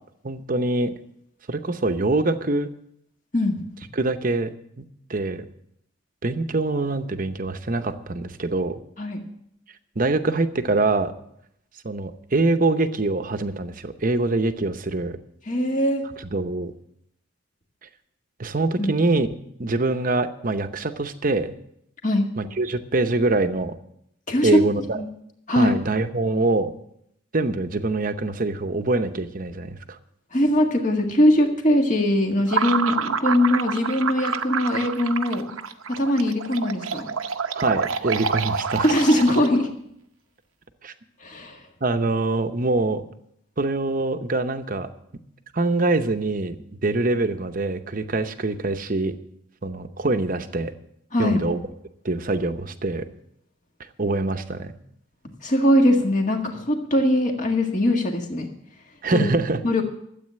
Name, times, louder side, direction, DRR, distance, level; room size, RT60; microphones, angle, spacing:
voice 1, 0.2-0.9 1.5-2.7 3.9-4.5 4.8-5.4 6.2-8.8 10.0-11.1 11.8-15.2 16.2-16.7 18.4-19.3 19.6-21.6 22.4-23.8 24.4-25.0 25.5-26.7 27.3-30.0 37.5-38.9 40.8-40.9 41.8-43.1 43.6-44.9 45.5-49.2 49.6-50.7 51.2-51.6 52.0-53.1 54.0-54.7 59.0-59.6, right 2 dB, 40° right, 9 dB, 0.8 m, -24 dB
voice 2, 15.5-16.1 18.8-18.9 22.0-22.3 24.3-24.5 25.0-25.1 25.5-25.8 30.3-35.5 35.9-37.1 38.8-39.7 41.2-41.6 51.1-51.4 55.4-58.5 59.1-59.3 59.6-59.8, left 1 dB, 40° left, 3 dB, 1.8 m, -21 dB
sound 1, 32.5-39.7, right 5 dB, 90° right, 0.8 m, -27 dB
13.0 x 8.4 x 7.6 m, 0.75 s
head